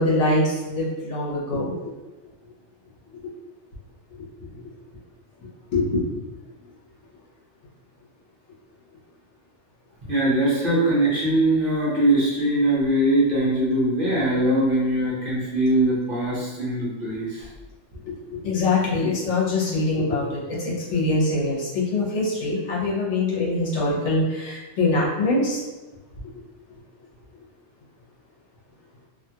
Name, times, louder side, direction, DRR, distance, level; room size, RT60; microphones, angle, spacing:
voice 1, 0.0-1.7 4.5-4.6 5.7-6.1 18.0-25.6, left 2 dB, 80° left, -6 dB, 1.2 m, -23 dB
voice 2, 10.0-17.5, right 1 dB, 50° right, -6 dB, 0.9 m, -21 dB
2.8 x 2.3 x 2.7 m, 1.1 s
omnidirectional pair, 1.2 m